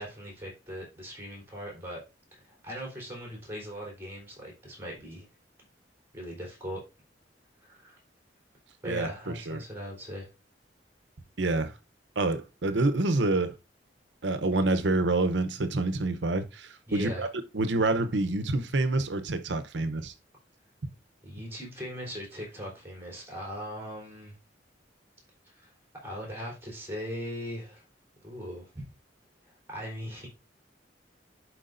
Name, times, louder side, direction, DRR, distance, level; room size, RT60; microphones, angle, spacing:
voice 1, 0.0-2.0 2.3-5.3 6.1-6.8 7.6-8.0 8.8-10.3 16.9-17.3 21.2-24.4 25.4-25.7 26.0-27.8 28.2-28.9 29.7-30.3, equal, 15° right, 3.5 m, -39 dB
voice 2, 8.8-9.6 11.4-11.7 12.2-13.5 14.2-17.3 17.5-20.1, right 2 dB, 75° right, 0.8 m, -27 dB
11.0 x 4.6 x 2.6 m
head